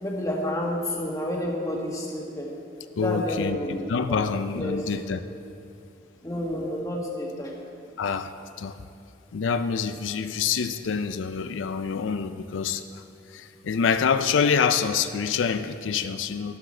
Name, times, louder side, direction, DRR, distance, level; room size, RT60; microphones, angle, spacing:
voice 1, 0.0-2.5 3.0-3.8 4.1-4.3 4.5-4.8 6.2-7.5, left 1 dB, 15° left, -2 dB, 1.5 m, -29 dB
voice 2, 3.0-5.2 8.0-8.8 9.3-13.0 13.3-16.6, left 6 dB, 90° left, 10 dB, 0.4 m, -26 dB
12.5 x 11.5 x 4.3 m, 2.7 s
head